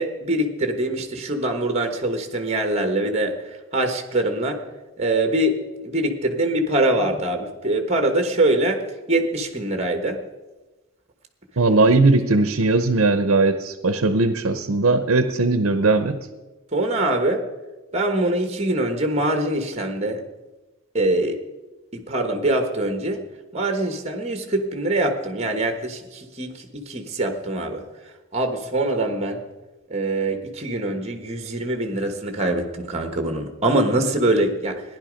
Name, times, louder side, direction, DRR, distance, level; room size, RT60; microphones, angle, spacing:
voice 1, 0.0-3.4 3.7-4.6 5.0-8.8 9.1-10.2 16.7-17.4 17.9-20.2 20.9-21.4 21.9-23.2 23.5-27.8 28.3-29.4 29.9-34.8, right 1 dB, 30° right, 6 dB, 1.3 m, -23 dB
voice 2, 11.6-16.2, right 3 dB, 75° right, 10 dB, 0.8 m, -19 dB
15.5 x 10.5 x 5.1 m, 1.2 s
head